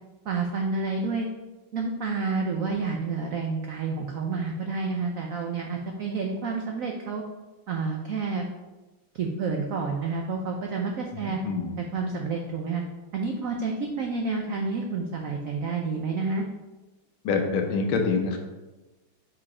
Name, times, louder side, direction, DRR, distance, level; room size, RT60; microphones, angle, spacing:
voice 1, 0.2-1.3 1.7-7.2 7.7-8.5 9.1-11.4 11.9-12.8 13.1-16.5, right 4 dB, 80° right, 1 dB, 0.7 m, -29 dB
voice 2, 11.1-11.8 17.2-18.4, left 4 dB, 80° left, 3 dB, 1.7 m, -26 dB
5.1 x 4.8 x 4.8 m, 1.1 s
omnidirectional pair, 2.2 m